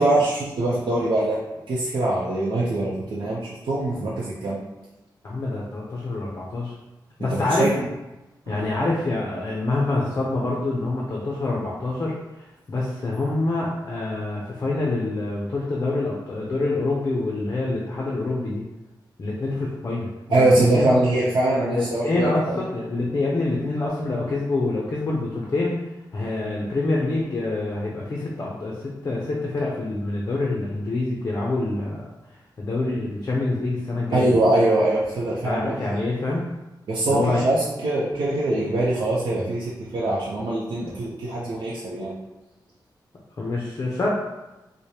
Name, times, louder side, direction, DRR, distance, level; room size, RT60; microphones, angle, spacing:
voice 1, 0.0-1.4 1.7-4.6 7.3-7.7 8.5-8.7 20.3-22.6 34.1-36.0 36.9-42.1, right 2 dB, 85° right, -6 dB, 0.6 m, -23 dB
voice 2, 5.2-6.7 7.2-7.7 8.5-18.6 19.2-21.0 21.7-25.7 26.1-32.1 32.6-34.3 35.4-36.5 37.0-37.4 43.4-44.1, left 2 dB, 40° left, -3 dB, 0.5 m, -26 dB
4.8 x 2.1 x 2.8 m, 1.0 s
wide cardioid pair, 160°, 8 cm